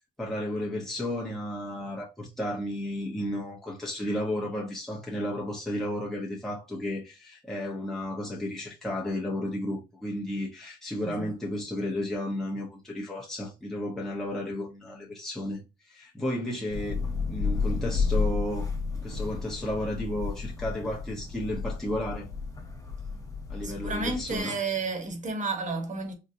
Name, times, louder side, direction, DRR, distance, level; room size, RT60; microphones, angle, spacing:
voice 1, 0.2-15.6 15.9-18.7 19.0-22.3 23.5-24.6, left 1 dB, ahead, 0.8 m, -33 dB
Thunder / Rain, 16.7-24.4, left 4 dB, 20° left, 1.5 m, -32 dB
voice 2, 23.5-26.1, right 3 dB, 40° right, 1.1 m, -32 dB
3.8 x 2.1 x 2.7 m
cardioid pair, 90°, 20 cm